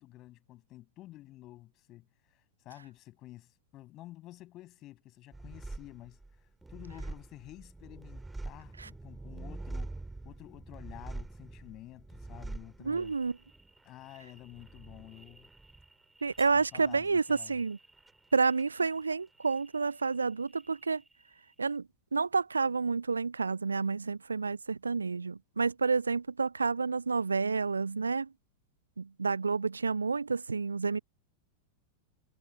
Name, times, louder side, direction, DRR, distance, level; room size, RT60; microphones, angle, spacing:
voice 1, 0.0-13.2 13.8-15.5 16.5-17.6, left 16 dB, 35° left, 6.1 m, -51 dB
sound 1, 5.3-20.2 20.5-21.3, right 2 dB, 5° right, 3.6 m, -46 dB
voice 2, 12.9-13.3 16.2-17.8 18.3-21.0 21.6-21.8 22.1-28.3 29.0-31.0, right 4 dB, 75° right, 0.4 m, -29 dB
figure-of-eight pair, 90°, 0 cm